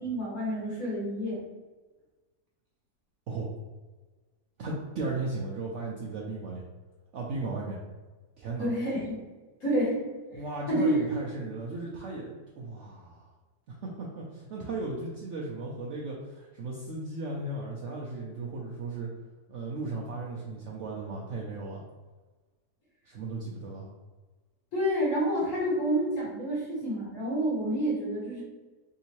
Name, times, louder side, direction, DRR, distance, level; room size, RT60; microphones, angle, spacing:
voice 1, 0.0-1.4 8.6-9.2 9.6-10.0 10.3-11.0 24.7-28.4, equal, 55° left, -6 dB, 1.6 m, -29 dB
voice 2, 4.6-6.6 7.1-7.8 8.4-8.7 10.3-13.3 13.8-19.1 19.5-21.8 23.1-23.9, right 3 dB, 70° right, -3 dB, 0.7 m, -36 dB
3.5 x 2.8 x 2.9 m, 1.3 s
omnidirectional pair, 1.7 m